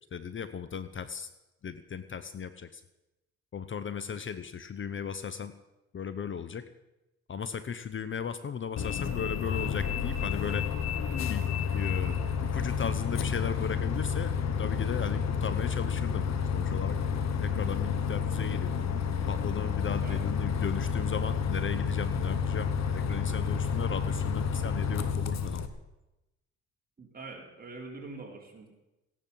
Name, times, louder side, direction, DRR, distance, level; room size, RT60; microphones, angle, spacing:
voice 1, 0.1-1.3 1.6-2.8 3.5-5.6 5.9-6.7 7.3-10.7 11.3-16.3 16.5-17.0 17.4-18.8 19.3-25.7, left 7 dB, 40° left, 12 dB, 0.9 m, -36 dB
Bus, 8.8-25.7, left 6 dB, 60° left, 1.5 m, -30 dB
voice 2, 27.0-28.7, right 3 dB, 30° right, 0 dB, 5.0 m, -44 dB
16.5 x 11.0 x 7.5 m, 0.98 s
cardioid pair, 90°, 30 cm